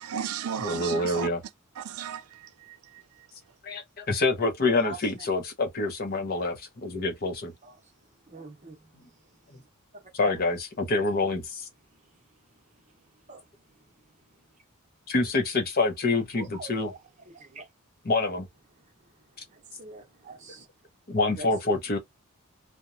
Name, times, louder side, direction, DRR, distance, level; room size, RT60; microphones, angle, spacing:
voice 1, 0.0-1.3 1.8-3.0, right 8 dB, 85° right, 0.4 m, -35 dB
voice 2, 0.6-1.4 3.6-7.5 10.1-11.6 15.1-16.9 18.0-18.5 21.1-22.0, left 3 dB, 45° left, 0.6 m, -26 dB
voice 3, 8.3-8.8 10.2-10.3 13.3-13.4 16.4-17.0 17.3-17.6 19.5-20.6 21.4-21.5, right 3 dB, 35° right, 0.8 m, -43 dB
2.9 x 2.1 x 2.5 m
head